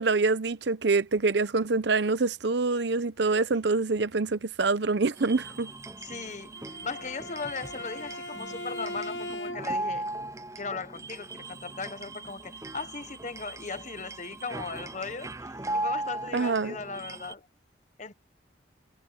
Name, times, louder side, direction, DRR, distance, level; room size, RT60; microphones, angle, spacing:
voice 1, 0.0-5.7 16.3-16.8, right 3 dB, 75° right, 0.8 m, -25 dB
sound 1, 5.2-17.3, right 2 dB, 15° right, 0.6 m, -38 dB
voice 2, 6.0-6.5 6.8-10.1 10.6-17.5 18.0-18.1, left 4 dB, 40° left, 1.1 m, -38 dB
Bowed string instrument, 6.5-9.9, left 1 dB, 75° left, 1.4 m, -39 dB
head